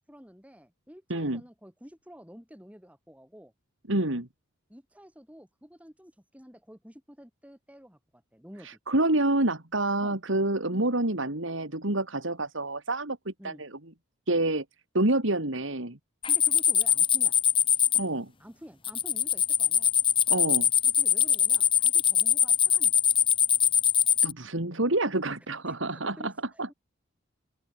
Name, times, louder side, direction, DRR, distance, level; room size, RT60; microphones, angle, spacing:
voice 1, 0.1-3.5 4.7-8.8 10.0-10.2 10.7-10.9 13.4-13.6 16.3-17.4 18.4-19.9 20.8-23.0 25.7-26.7, equal, 5° right, 7.2 m, -50 dB
voice 2, 1.1-1.4 3.9-4.3 8.6-13.7 14.3-14.6 14.9-16.0 17.9-18.3 20.3-20.7 24.2-26.3 26.6-26.7, right 2 dB, 65° right, 3.0 m, -28 dB
sound 1, 16.2-18.0 18.8-24.3, left 9 dB, 25° left, 1.8 m, -23 dB
open air
head